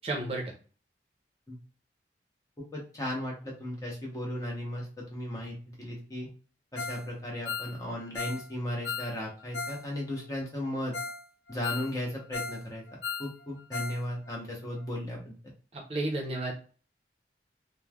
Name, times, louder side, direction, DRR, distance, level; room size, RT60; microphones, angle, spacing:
voice 1, 0.0-0.4 15.7-16.5, right 2 dB, 35° right, -1 dB, 0.6 m, -32 dB
voice 2, 2.7-6.3 6.7-10.9 11.5-12.8 13.2-15.4, left 1 dB, 20° left, -3 dB, 0.7 m, -36 dB
Ringtone, 6.8-7.1 7.3-9.8 10.1-10.2 10.6-10.7 10.9-11.2 11.5-12.6 12.9-14.0 14.3-14.4 14.8-14.9, left 4 dB, 75° left, 0.4 m, -37 dB
3.1 x 2.1 x 2.2 m, 0.39 s
head